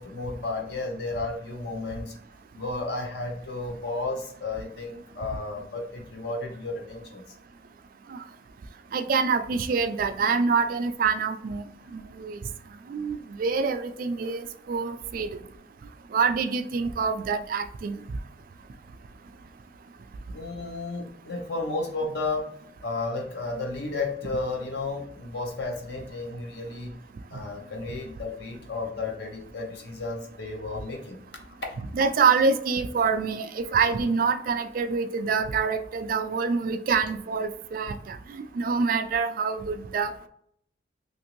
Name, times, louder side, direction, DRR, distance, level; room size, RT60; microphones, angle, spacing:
voice 1, 0.0-2.1 2.5-7.2 20.3-22.5 22.8-27.0 27.3-31.2 31.6-31.9, left 3 dB, 65° left, 2 dB, 0.7 m, -33 dB
voice 2, 8.9-11.6 11.9-12.4 12.9-15.3 16.1-18.0 31.9-40.3, right 5 dB, 50° right, 8 dB, 0.3 m, -26 dB
2.9 x 2.6 x 2.9 m, 0.68 s
head